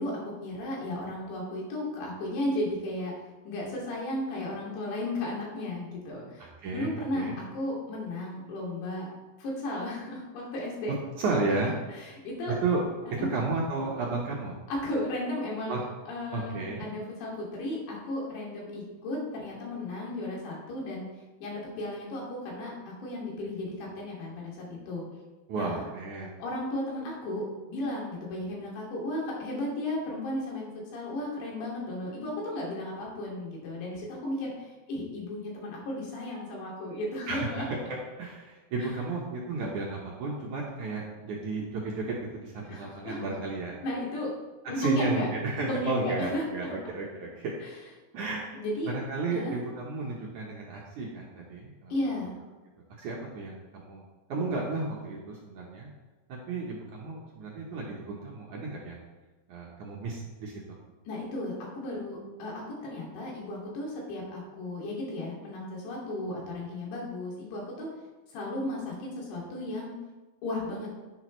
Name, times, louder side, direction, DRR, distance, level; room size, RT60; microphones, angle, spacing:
voice 1, 0.0-3.1 3.4-6.4 6.7-9.1 9.4-10.9 11.6-12.6 13.1-13.3 14.7-21.1 21.4-22.7 23.0-25.1 25.5-25.8 26.4-37.7 38.8-39.0 42.7-43.4 43.8-44.3 44.7-45.3 45.6-46.7 47.6-47.7 48.5-48.9 49.3-49.6 51.9-52.3 61.1-67.9 68.3-69.9 70.4-70.9, left 1 dB, 85° left, -3 dB, 4.7 m, -34 dB
voice 2, 6.4-7.4 11.2-11.7 12.6-12.8 13.3-14.5 15.7-15.8 16.3-16.9 25.5-26.3 37.3-37.7 38.2-43.8 44.8-47.5 48.1-48.6 48.9-51.9 53.0-54.0 54.3-55.9 56.3-59.0 59.5-60.5, right 3 dB, 65° right, -3 dB, 2.0 m, -33 dB
10.5 x 10.0 x 3.2 m, 1.2 s
omnidirectional pair, 4.9 m